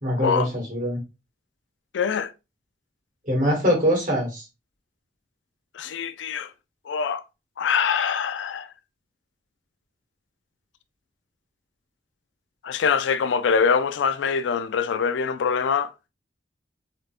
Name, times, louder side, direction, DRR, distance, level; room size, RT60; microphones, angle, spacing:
voice 1, 0.0-1.0 3.3-4.4, equal, 45° right, 1.8 m, -23 dB
voice 2, 1.9-2.3 5.7-6.5 6.9-7.2 7.6-8.7 12.6-15.9, left 6 dB, 80° left, 0.4 m, -24 dB
3.9 x 3.3 x 2.4 m
head